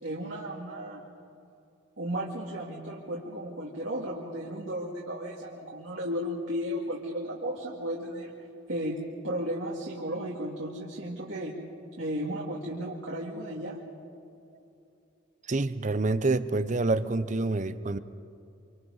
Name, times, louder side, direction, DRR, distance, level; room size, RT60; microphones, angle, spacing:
voice 1, 0.0-1.0 2.0-8.3 8.7-8.9 9.2-11.5 12.0-13.8, equal, 65° right, -4 dB, 2.2 m, -34 dB
voice 2, 15.5-18.0, right 2 dB, 40° right, 13 dB, 0.7 m, -27 dB
27.5 x 25.0 x 4.1 m, 2.8 s
head